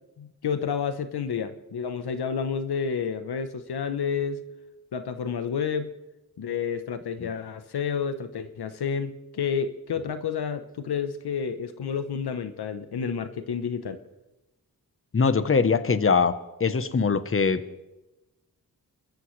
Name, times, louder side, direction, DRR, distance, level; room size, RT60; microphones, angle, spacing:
voice 1, 0.2-4.4 4.9-6.0 6.4-14.0, left 6 dB, 85° left, 10 dB, 1.0 m, -30 dB
voice 2, 15.1-17.6, left 5 dB, 35° left, 12 dB, 1.0 m, -22 dB
29.0 x 14.0 x 3.3 m, 1.0 s
cardioid pair, 70°, 38 cm